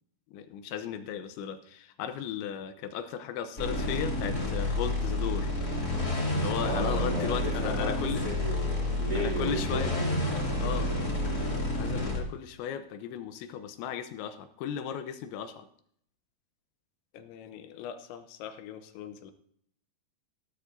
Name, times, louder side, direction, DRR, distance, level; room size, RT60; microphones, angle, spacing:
voice 1, 0.3-5.5 6.3-8.2 9.2-9.9 10.6-10.9 11.3-11.4 11.7-15.7 17.1-19.3, left 8 dB, 85° left, 9 dB, 3.2 m, -36 dB
sound 1, 3.6-12.2, left 1 dB, 25° left, 2.3 m, -30 dB
voice 2, 6.6-10.4, right 1 dB, 25° right, -1 dB, 2.8 m, -35 dB
15.5 x 13.0 x 2.7 m, 0.65 s
omnidirectional pair, 5.3 m